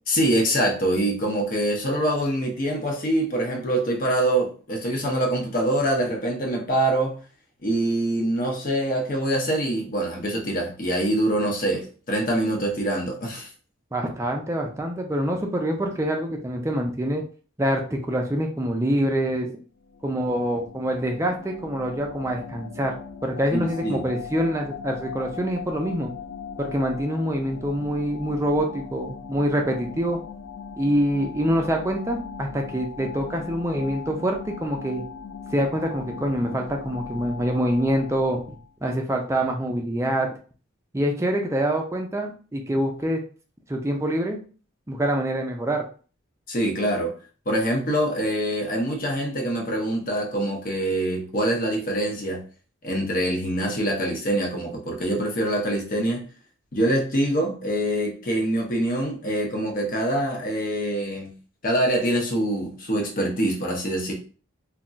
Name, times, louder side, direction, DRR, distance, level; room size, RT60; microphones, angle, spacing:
voice 1, 0.1-7.2 7.6-13.5 23.5-24.1 46.5-47.1 47.5-52.4 52.8-56.2 56.7-61.3 61.6-64.1, right 1 dB, 40° left, 0 dB, 0.7 m, -24 dB
voice 2, 13.9-17.2 17.6-19.5 20.0-22.9 23.2-26.1 26.6-30.2 30.8-35.0 35.5-38.4 38.8-40.3 40.9-43.2 43.7-44.4 44.9-45.8, equal, 15° right, 2 dB, 0.4 m, -25 dB
sound 1, 19.8-38.7, left 6 dB, 75° left, 0.4 m, -39 dB
2.3 x 2.2 x 3.8 m, 0.39 s
head